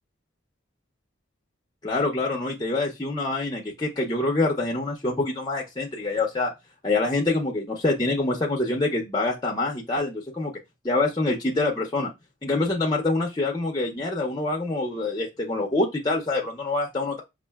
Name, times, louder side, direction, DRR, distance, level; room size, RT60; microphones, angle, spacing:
voice 1, 1.8-6.5 6.8-10.5 10.8-12.1 12.4-17.2, left 2 dB, 20° left, 1 dB, 0.5 m, -25 dB
5.2 x 2.4 x 2.3 m, 0.22 s
head